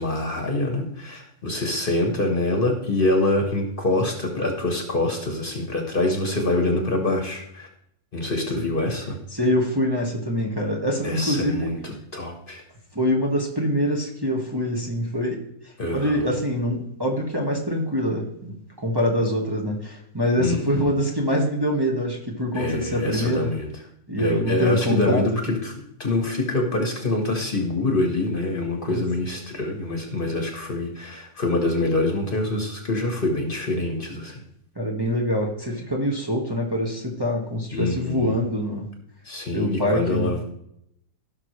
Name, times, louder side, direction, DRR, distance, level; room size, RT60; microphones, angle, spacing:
voice 1, 0.0-7.7 8.1-9.2 11.0-12.6 15.8-16.3 20.4-20.9 22.5-23.7 24.2-34.4 37.7-38.4 39.2-40.4, left 2 dB, 40° left, 3 dB, 1.4 m, -25 dB
voice 2, 9.3-11.7 12.9-23.5 24.1-25.2 28.9-29.0 34.7-38.9 39.5-40.3, equal, 15° right, -2 dB, 1.4 m, -24 dB
16.5 x 6.0 x 3.2 m, 0.75 s
omnidirectional pair, 1.5 m